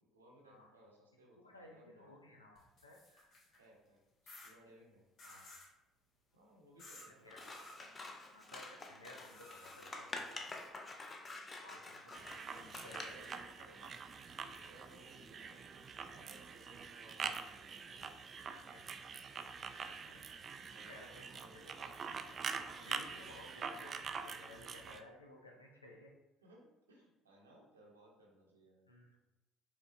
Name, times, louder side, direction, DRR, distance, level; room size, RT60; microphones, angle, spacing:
voice 1, 0.0-2.1 3.6-5.1 6.3-7.4 11.4-11.8 12.5-13.9 14.4-19.0 20.6-21.7 23.0-23.4 26.4-28.9, right 1 dB, 85° right, -2 dB, 0.8 m, -63 dB
voice 2, 1.4-3.5 5.2-5.5 7.1-7.9 8.3-10.8 11.6-14.6 18.5-18.8 19.8-20.5 20.9-21.9 22.2-26.1 28.9-29.2, left 1 dB, 90° left, 0 dB, 0.5 m, -58 dB
sound 1, 2.6-3.6 4.3-4.5 5.2-5.7 6.8-7.1 7.4-7.8 9.2-10.7, left 2 dB, 50° left, 1.4 m, -56 dB
Scissors, 7.3-13.4, left 2 dB, 30° left, 0.6 m, -48 dB
sound 2, 12.1-25.0, right 5 dB, 40° right, 0.3 m, -45 dB
5.0 x 3.4 x 2.5 m, 0.91 s
figure-of-eight pair, 55°, 0 cm